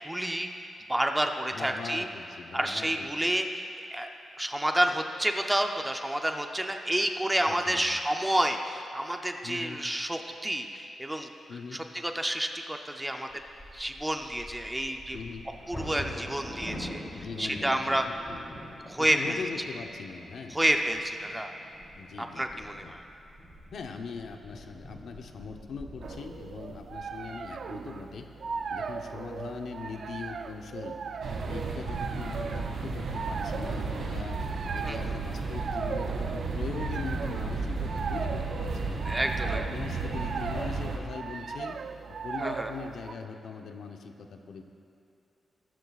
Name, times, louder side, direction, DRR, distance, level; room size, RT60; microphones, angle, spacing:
voice 1, 0.0-2.1 2.5-4.1 4.4-11.3 11.7-13.3 13.7-15.2 15.7-17.0 17.4-18.0 18.9-19.4 20.5-21.5 22.2-23.0 34.8-35.0 39.0-39.6 42.4-42.7, right 1 dB, 10° right, 4 dB, 0.6 m, -29 dB
voice 2, 1.5-3.3 7.5-8.0 9.4-9.8 11.5-11.8 15.1-15.4 17.1-18.4 19.0-20.6 22.0-22.9 23.7-28.3 28.7-31.0 31.5-34.4 34.7-39.0 39.4-41.8 42.2-44.6, left 5 dB, 65° left, 4 dB, 0.8 m, -41 dB
Bird vocalization bird call bird song / Wind / Thunder, 13.3-29.2 29.8-29.9 30.3-30.7 31.1-31.6, equal, 20° left, 3.2 m, -46 dB
sound 1, 26.0-43.1, right 5 dB, 55° right, 0.5 m, -38 dB
sound 2, 31.2-41.0, right 3 dB, 80° right, 2.0 m, -33 dB
22.5 x 12.5 x 2.4 m, 2.8 s
wide cardioid pair, 165°, 0 cm